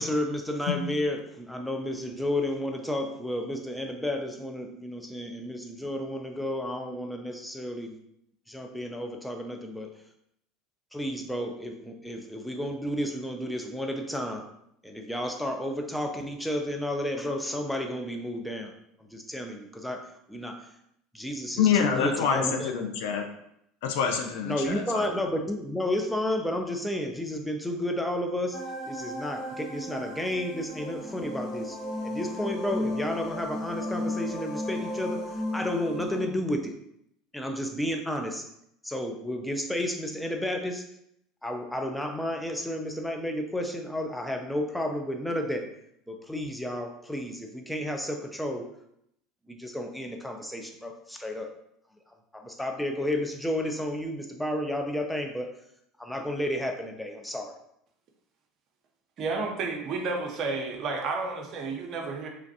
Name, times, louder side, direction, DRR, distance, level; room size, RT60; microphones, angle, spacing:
voice 1, 0.0-8.0 8.5-9.9 10.9-14.5 14.8-18.7 19.0-20.7 21.1-22.7 24.4-28.6 28.9-31.8 32.0-36.7 37.3-38.5 38.8-40.8 41.4-45.7 46.1-48.7 49.5-51.5 52.3-55.5 56.0-57.6, left 1 dB, 5° left, 4 dB, 0.5 m, -32 dB
voice 2, 21.6-23.2 23.8-25.2, left 7 dB, 75° left, 4 dB, 0.3 m, -26 dB
sound 1, 28.5-36.3, left 1 dB, 45° left, 1.0 m, -34 dB
voice 3, 59.2-62.3, right 3 dB, 50° right, 1 dB, 0.6 m, -31 dB
3.0 x 2.5 x 2.7 m, 0.76 s
hypercardioid pair, 85°, 0 cm